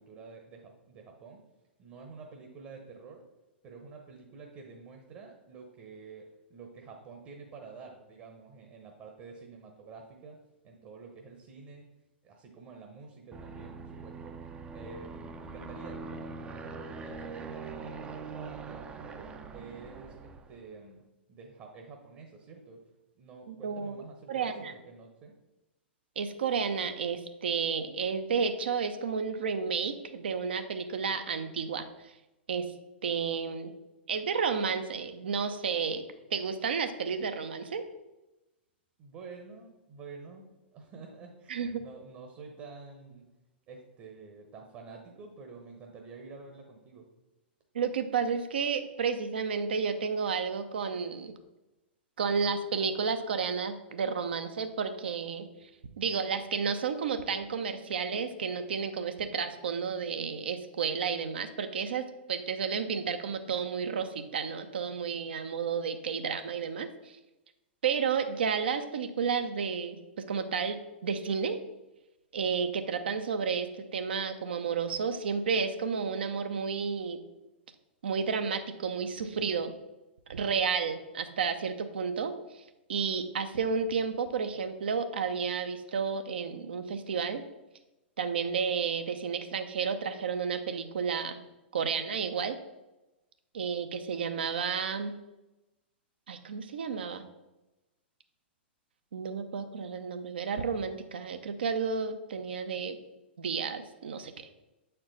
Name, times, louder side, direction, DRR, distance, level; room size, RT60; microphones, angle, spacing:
voice 1, 0.0-1.4 1.8-3.2 3.6-10.4 10.6-11.9 12.2-14.4 14.7-21.0 21.3-22.9 23.2-25.3 39.0-40.4 40.7-43.3 43.7-47.1, right 4 dB, 35° right, 2 dB, 0.9 m, -49 dB
Aircraft, 13.3-20.6, right 4 dB, 15° right, 0.5 m, -43 dB
voice 2, 23.5-24.0 24.3-24.7 26.2-31.9 32.5-32.7 33.0-33.7 34.1-36.0 36.3-37.8 41.5-41.8 47.7-51.3 52.2-55.5 56.0-67.2 67.8-71.6 72.3-77.2 78.0-79.7 80.3-82.6 82.9-87.4 88.2-91.4 91.7-92.6 93.5-95.1 96.3-97.3 99.1-103.0 103.4-104.3, right 6 dB, 65° right, 9 dB, 0.6 m, -31 dB
7.5 x 4.5 x 4.0 m, 1.0 s
figure-of-eight pair, 105°, 6 cm